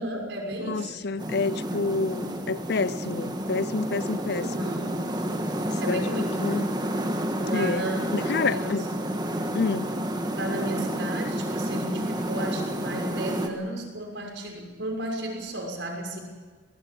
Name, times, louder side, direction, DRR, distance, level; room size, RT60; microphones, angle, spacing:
voice 1, 0.0-1.0 4.4-5.0 5.8-6.4 7.4-8.0 8.4-8.9 10.4-16.2, right 1 dB, 65° right, 6.2 m, -33 dB
voice 2, 0.6-4.7 5.9-6.1 6.4-6.7 7.5-8.8 9.5-9.9, left 4 dB, 55° left, 0.6 m, -28 dB
sound 1, 1.2-13.5, right 1 dB, 20° right, 1.9 m, -30 dB
22.5 x 19.0 x 8.0 m
head